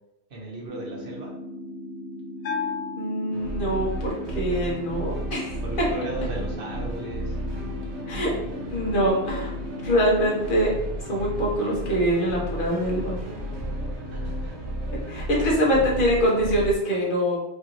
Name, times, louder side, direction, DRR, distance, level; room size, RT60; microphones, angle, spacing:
voice 1, 0.3-1.3 5.6-7.4 14.1-14.6, right 2 dB, 60° right, -2 dB, 1.1 m, -36 dB
sound 1, 0.6-10.6, equal, 10° left, 1.0 m, -38 dB
Bell, 2.4-4.1, left 5 dB, 75° left, 0.9 m, -33 dB
voice 2, 3.0-5.6 8.1-8.3 8.7-9.5 9.8-10.7 11.1-13.2 15.1-17.4, equal, 55° left, -4 dB, 1.2 m, -24 dB
sound 2, 3.3-16.7, equal, 85° right, 1.1 m, -33 dB
4.8 x 2.5 x 3.0 m, 0.93 s
omnidirectional pair, 1.1 m